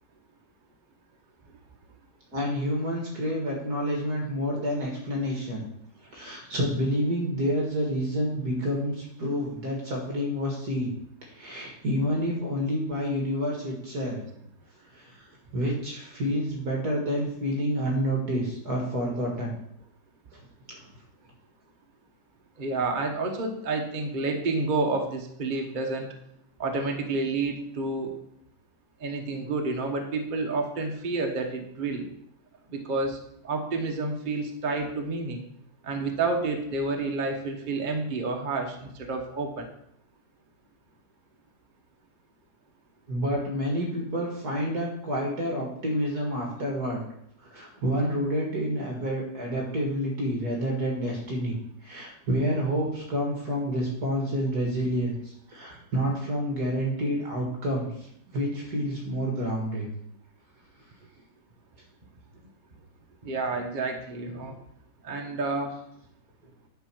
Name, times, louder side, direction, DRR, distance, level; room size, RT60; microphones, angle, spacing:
voice 1, 2.3-5.6 6.1-10.9 11.2-14.2 14.9-15.3 15.5-19.5 20.7-20.8 43.1-47.1 47.4-51.5 51.8-55.1 55.5-59.9, equal, 55° right, -1 dB, 2.3 m, -29 dB
voice 2, 22.6-26.1 26.6-28.1 29.0-32.1 32.7-33.2 33.4-35.4 35.8-39.7 63.2-64.6 65.0-65.8, right 3 dB, 30° right, 2 dB, 1.0 m, -29 dB
10.5 x 4.4 x 6.1 m, 0.73 s
omnidirectional pair, 2.1 m